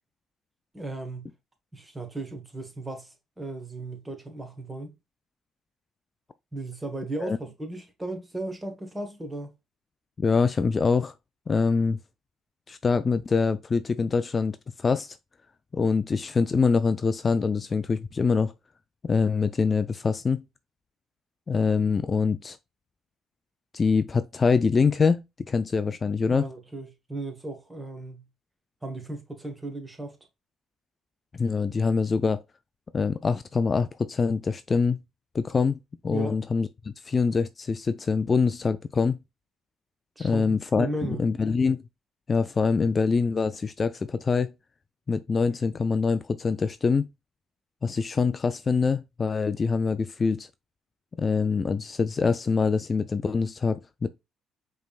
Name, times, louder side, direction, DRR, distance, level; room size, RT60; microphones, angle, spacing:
voice 1, 0.7-1.3 1.7-4.9 6.5-9.5 26.3-28.2 28.8-30.2 36.1-36.4 40.2-41.2, right 2 dB, 15° right, 1.5 m, -36 dB
voice 2, 10.2-11.1 11.5-12.0 12.7-15.2 15.7-18.5 19.0-20.4 21.5-22.6 23.7-26.5 31.3-32.4 32.9-35.0 35.3-35.8 36.0-39.2 40.2-41.8 42.3-44.5 45.1-47.1 47.8-50.5 51.2-54.1, left 5 dB, 35° left, 0.3 m, -24 dB
5.0 x 3.4 x 2.4 m
cardioid pair, 90°, 0 cm